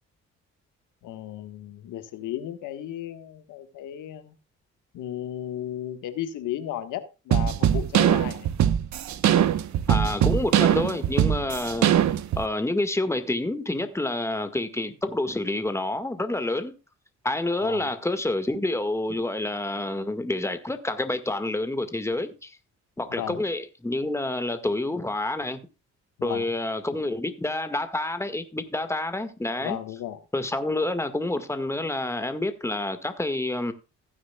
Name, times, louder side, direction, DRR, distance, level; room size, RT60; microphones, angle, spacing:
voice 1, 1.0-4.3 4.9-8.5 17.6-17.9 23.1-23.4 26.2-26.5 29.6-30.2, left 11 dB, 85° left, 1.6 m, -34 dB
sound 1, 7.3-12.4, right 10 dB, 65° right, 1.1 m, -21 dB
voice 2, 9.9-11.9 12.4-16.7 17.2-22.6 23.0-25.6 26.2-30.0 30.3-33.7, left 2 dB, 10° left, 1.8 m, -28 dB
16.0 x 9.5 x 2.4 m
cardioid pair, 90°, 30 cm